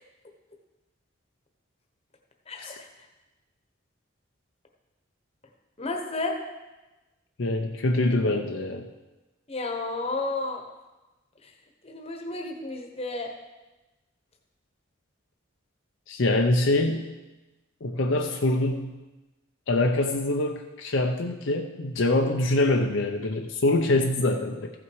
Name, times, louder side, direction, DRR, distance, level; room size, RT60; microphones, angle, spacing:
voice 1, 2.5-2.9 5.8-6.3 9.5-10.6 11.4-11.5 11.8-13.3, left 2 dB, 30° left, 2 dB, 1.2 m, -32 dB
voice 2, 7.4-8.9 16.1-17.1 17.8-19.0 19.7-24.7, left 2 dB, 70° left, 3 dB, 0.7 m, -24 dB
15.0 x 6.0 x 4.7 m, 1.1 s
head